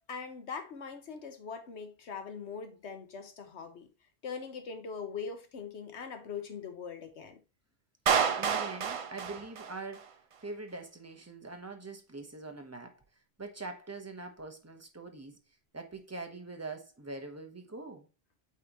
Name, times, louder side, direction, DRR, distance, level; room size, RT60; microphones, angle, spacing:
voice 1, 0.1-3.9 4.2-7.4, left 5 dB, 85° left, 1.3 m, -41 dB
voice 2, 8.1-13.0 13.4-15.4 15.7-18.1, right 3 dB, 15° right, 0.8 m, -43 dB
Clapping, 8.1-10.1, right 7 dB, 45° right, 0.4 m, -29 dB
8.4 x 4.1 x 2.9 m
omnidirectional pair, 1.1 m